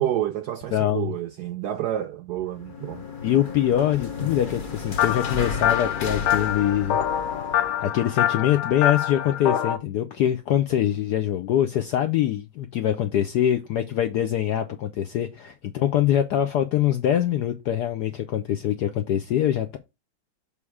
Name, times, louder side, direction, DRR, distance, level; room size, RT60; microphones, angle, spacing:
voice 1, 0.0-3.0, right 12 dB, 80° right, 0.9 m, -29 dB
voice 2, 0.7-1.1 3.2-7.0 7.8-19.8, left 11 dB, 70° left, 0.9 m, -24 dB
sound 1, 2.5-8.0, left 5 dB, 50° left, 0.6 m, -34 dB
sound 2, 5.0-9.8, left 10 dB, 90° left, 1.5 m, -25 dB
7.0 x 3.2 x 4.8 m
omnidirectional pair, 2.2 m